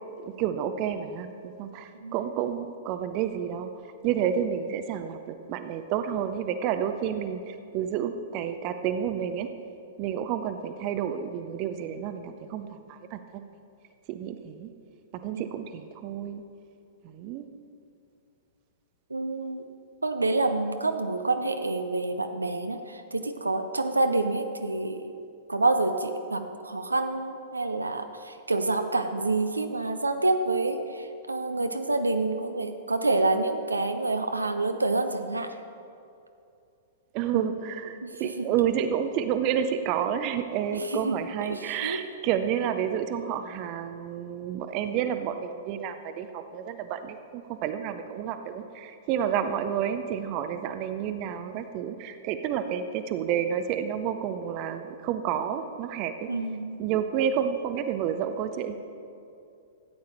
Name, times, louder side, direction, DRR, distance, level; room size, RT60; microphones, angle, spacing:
voice 1, 0.2-3.7 4.0-9.5 10.0-13.4 14.1-14.7 15.1-16.4 17.0-17.5 37.1-56.3 56.8-58.7, right 9 dB, 35° right, 9 dB, 0.6 m, -30 dB
voice 2, 19.1-19.6 20.0-25.1 25.5-35.5 37.3-37.5 38.0-38.1 38.4-38.5 41.0-41.1 41.5-42.0 56.3-56.8, right 2 dB, 80° right, 8 dB, 0.6 m, -27 dB
14.0 x 8.8 x 4.4 m, 2.6 s
figure-of-eight pair, 105°, 0 cm